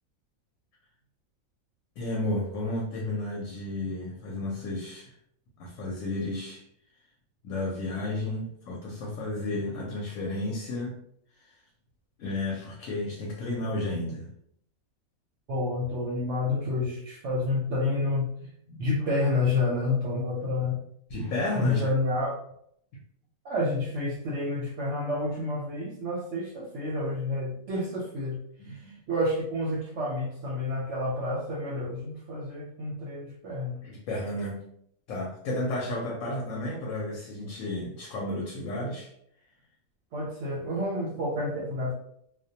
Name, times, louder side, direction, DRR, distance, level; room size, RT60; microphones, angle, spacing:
voice 1, 2.0-5.1 5.6-6.7 7.4-10.9 12.2-14.3 18.7-18.8 21.1-21.9 28.6-29.0 33.8-34.6 35.1-39.1, left 1 dB, 70° left, -2 dB, 0.9 m, -32 dB
voice 2, 15.5-18.5 18.8-20.8 21.6-22.3 23.4-28.4 28.6-33.8 40.1-41.9, left 2 dB, 65° right, -4 dB, 0.8 m, -29 dB
2.3 x 2.1 x 2.7 m, 0.72 s
omnidirectional pair, 1.5 m